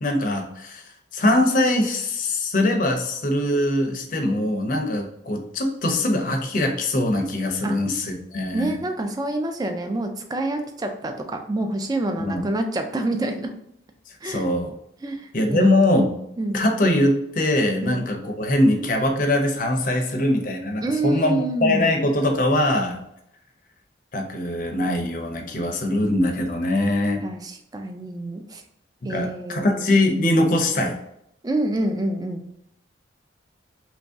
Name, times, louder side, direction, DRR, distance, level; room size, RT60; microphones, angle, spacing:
voice 1, 0.0-8.8 12.2-12.5 14.1-14.7 15.3-16.2 16.5-23.0 24.1-27.2 29.1-31.0, left 1 dB, 45° left, 3 dB, 0.5 m, -22 dB
voice 2, 8.5-13.5 14.2-14.5 15.0-16.6 17.8-18.2 20.8-21.9 27.2-28.6 29.0-29.8 31.4-32.5, right 2 dB, 20° right, 5 dB, 0.3 m, -27 dB
3.0 x 2.6 x 3.4 m, 0.76 s
head